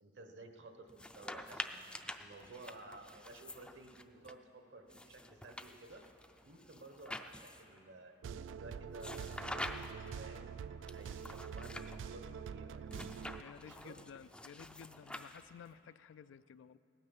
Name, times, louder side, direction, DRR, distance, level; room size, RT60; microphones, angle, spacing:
voice 1, 0.0-1.8 2.2-6.0 6.4-12.9 13.6-14.0, right 2 dB, 65° right, 6 dB, 1.1 m, -54 dB
sound 1, 0.9-4.3 4.9-7.8 9.0-10.1 10.9-12.0 12.9-15.7, left 1 dB, 5° left, 0.4 m, -47 dB
sound 2, 8.2-13.4, right 6 dB, 80° right, 0.3 m, -45 dB
voice 2, 13.3-16.8, left 7 dB, 75° left, 16 dB, 0.3 m, -54 dB
17.0 x 9.8 x 7.2 m, 2.9 s
head